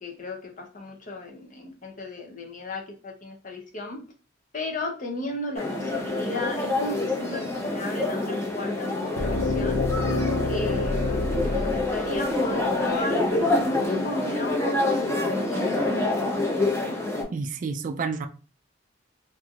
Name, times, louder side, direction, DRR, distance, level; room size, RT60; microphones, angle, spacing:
voice 1, 0.0-4.0 4.5-9.9 10.4-15.9, left 2 dB, 45° left, 0.7 m, -35 dB
sound 1, 5.5-17.2, left 2 dB, 15° left, 0.7 m, -27 dB
sound 2, 9.2-13.1, left 2 dB, 85° left, 0.5 m, -27 dB
voice 2, 17.3-18.3, right 4 dB, 45° right, 0.3 m, -29 dB
3.1 x 2.6 x 2.4 m
head